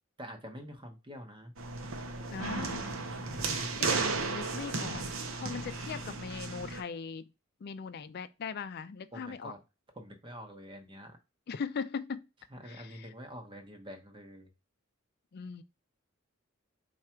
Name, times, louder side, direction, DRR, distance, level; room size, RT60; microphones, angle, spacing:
voice 1, 0.2-1.5 3.1-3.9 9.1-9.6 9.9-11.2 12.5-14.5, equal, 25° right, 1.0 m, -46 dB
sound 1, 1.6-6.8, right 4 dB, 80° right, 0.7 m, -34 dB
voice 2, 2.3-2.9 3.8-5.0 5.4-7.3 7.6-9.5 11.5-12.2 12.7-13.1 15.3-15.6, left 5 dB, 55° left, 0.4 m, -39 dB
4.7 x 2.4 x 4.3 m
head